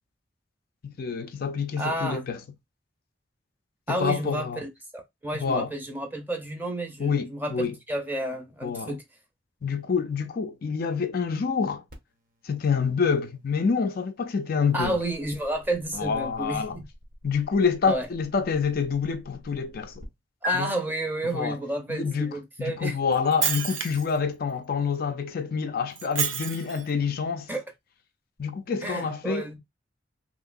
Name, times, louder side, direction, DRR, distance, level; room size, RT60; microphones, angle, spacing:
voice 1, 0.8-2.4 3.9-4.6 5.4-5.7 7.0-7.8 8.6-9.0 9.6-11.8 12.4-15.0 15.9-16.8 17.2-19.9 20.5-20.7 21.3-21.6 21.9-27.5 28.4-29.5, left 5 dB, 50° left, 0.4 m, -27 dB
voice 2, 1.8-2.3 3.9-9.0 14.7-16.8 17.8-18.1 20.4-22.9 27.5-27.6 28.8-29.6, right 1 dB, 10° right, 0.6 m, -31 dB
sound 1, 11.9-20.1 20.4-20.6, left 3 dB, 45° right, 0.8 m, -41 dB
Shatter, 23.1-24.2 26.0-26.9, right 8 dB, 80° right, 0.6 m, -29 dB
3.0 x 2.7 x 2.5 m
head